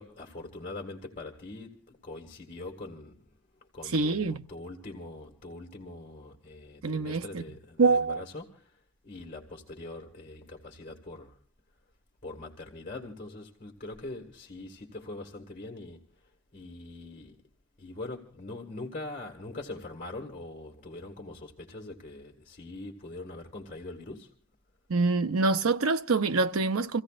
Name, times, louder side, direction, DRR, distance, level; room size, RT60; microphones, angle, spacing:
voice 1, 0.0-3.3 3.7-11.4 12.2-16.0 16.5-17.4 17.8-24.3, left 2 dB, 35° left, 2.1 m, -43 dB
voice 2, 3.9-4.4 6.8-7.4 7.8-8.2 24.9-27.0, right 3 dB, 85° right, 0.8 m, -25 dB
29.5 x 16.0 x 2.5 m
head